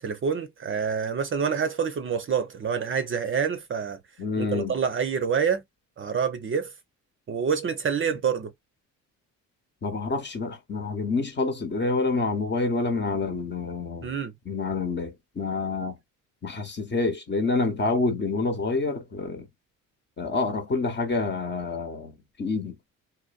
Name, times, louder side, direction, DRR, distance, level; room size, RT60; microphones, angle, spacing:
voice 1, 0.0-4.0 4.4-5.6 6.0-6.7 7.3-8.5 14.0-14.3, right 6 dB, 35° right, 0.6 m, -27 dB
voice 2, 4.2-4.7 9.8-14.1 14.5-16.0 16.4-19.5 20.2-22.7, left 3 dB, 30° left, 0.9 m, -27 dB
2.6 x 2.0 x 2.4 m
supercardioid pair, 75°, 35 cm